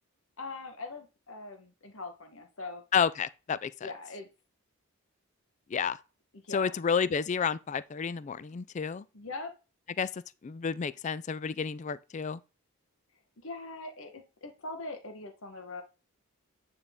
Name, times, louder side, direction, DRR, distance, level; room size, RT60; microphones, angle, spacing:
voice 1, 0.4-2.8 3.8-4.3 6.3-6.8 9.1-9.5 13.4-15.8, left 3 dB, 65° left, 1.2 m, -42 dB
voice 2, 2.9-3.9 5.7-6.0 6.5-9.0 10.0-12.4, left 6 dB, 35° left, 0.3 m, -30 dB
9.3 x 3.9 x 3.6 m
head